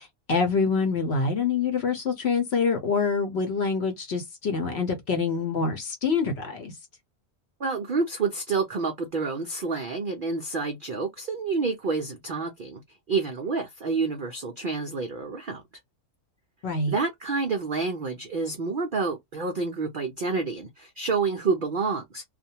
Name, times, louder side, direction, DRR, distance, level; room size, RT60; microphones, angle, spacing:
voice 1, 0.0-6.7 16.6-16.9, left 5 dB, 55° left, 0.8 m, -26 dB
voice 2, 7.6-12.8 13.1-15.6 16.9-22.2, right 4 dB, 80° right, 0.4 m, -28 dB
2.4 x 2.2 x 2.7 m
omnidirectional pair, 1.6 m